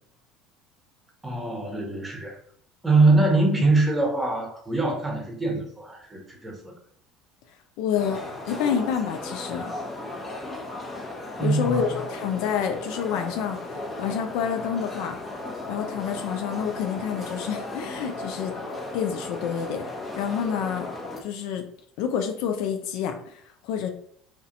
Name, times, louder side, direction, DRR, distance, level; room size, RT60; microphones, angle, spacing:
voice 1, 1.2-2.4 2.8-6.7 11.4-11.9, right 2 dB, 15° right, 0.9 m, -23 dB
voice 2, 7.8-9.7 11.4-13.6 14.0-15.2 15.7-18.5 18.9-19.8 20.2-20.9 21.2-21.6 22.0-23.9, left 7 dB, 70° left, 0.3 m, -28 dB
sound 1, 8.0-21.2, left 2 dB, 25° left, 0.7 m, -36 dB
2.4 x 2.1 x 2.7 m
hypercardioid pair, 80°, 0 cm